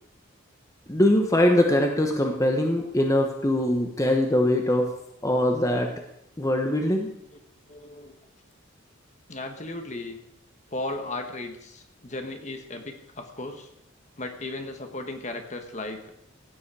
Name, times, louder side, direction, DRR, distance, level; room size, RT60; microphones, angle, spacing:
voice 1, 0.9-4.9 5.2-5.9 6.4-7.1, left 1 dB, 15° left, 3 dB, 1.2 m, -22 dB
voice 2, 7.7-8.1 9.3-10.2 10.7-13.7 14.2-16.1, left 2 dB, 35° left, 5 dB, 1.4 m, -36 dB
16.0 x 9.5 x 4.9 m, 0.78 s
head